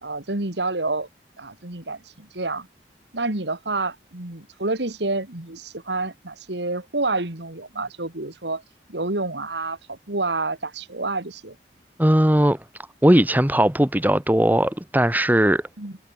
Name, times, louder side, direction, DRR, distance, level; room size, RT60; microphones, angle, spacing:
voice 1, 0.0-1.1 1.4-2.7 3.1-8.6 8.9-11.6 15.8-16.0, right 2 dB, 75° right, 2.7 m, -28 dB
voice 2, 12.0-12.6 13.0-15.6, right 1 dB, 10° right, 1.6 m, -18 dB
head